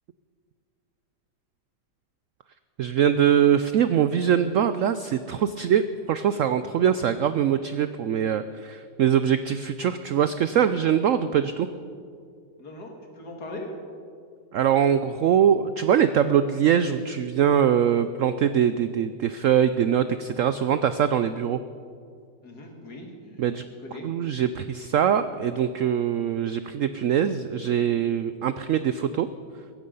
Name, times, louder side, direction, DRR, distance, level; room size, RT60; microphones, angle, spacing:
voice 1, 2.8-11.7 14.5-21.6 23.4-23.6 24.0-29.3, right 9 dB, 80° right, 12 dB, 0.7 m, -23 dB
voice 2, 12.6-13.7 22.4-23.5 23.8-24.1, left 2 dB, 60° left, 1 dB, 2.9 m, -40 dB
16.0 x 15.0 x 5.4 m, 2.3 s
omnidirectional pair, 1.9 m